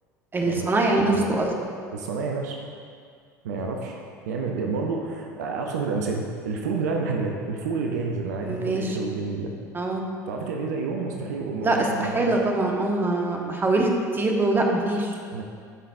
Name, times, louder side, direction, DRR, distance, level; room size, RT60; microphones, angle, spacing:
voice 1, 0.3-1.5 8.4-9.0 9.7-10.0 11.6-15.2, right 2 dB, 20° right, 1 dB, 1.2 m, -23 dB
voice 2, 1.9-2.6 3.4-9.5 10.3-12.3 15.3-15.4, right 4 dB, 70° right, 2 dB, 0.7 m, -29 dB
14.5 x 5.7 x 2.6 m, 2.2 s
figure-of-eight pair, 70°, 10 cm